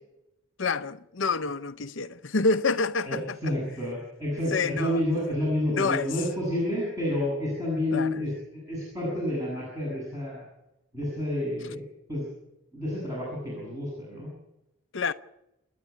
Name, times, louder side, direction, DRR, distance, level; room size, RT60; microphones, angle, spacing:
voice 1, 0.6-3.4 4.5-5.0 5.7-6.1 7.9-8.2 14.9-15.1, left 4 dB, 55° left, 0.7 m, -27 dB
voice 2, 3.0-10.4 10.9-12.3 12.7-14.3, left 1 dB, 15° right, 7.9 m, -30 dB
29.0 x 9.7 x 9.5 m
head